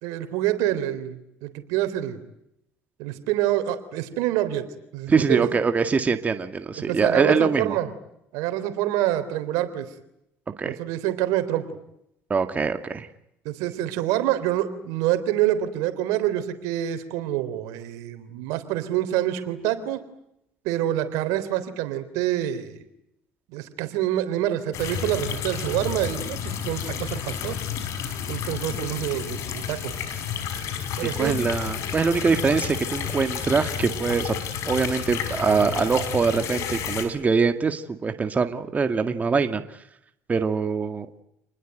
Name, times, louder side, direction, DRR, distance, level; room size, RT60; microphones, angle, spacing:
voice 1, 0.0-2.2 3.0-4.7 4.9-5.5 6.9-7.9 8.3-9.9 10.7-11.7 13.5-20.0 20.6-22.9 23.5-27.6 28.3-29.9 31.0-31.4, right 13 dB, 85° right, 10 dB, 3.6 m, -26 dB
voice 2, 5.1-7.8 10.6-10.8 12.3-13.1 31.0-34.3 34.7-39.8 40.3-41.1, right 5 dB, 30° right, 8 dB, 1.9 m, -23 dB
sound 1, 24.7-37.1, left 8 dB, 65° left, 6.0 m, -31 dB
28.5 x 20.5 x 9.2 m, 0.81 s
supercardioid pair, 95°, 5 cm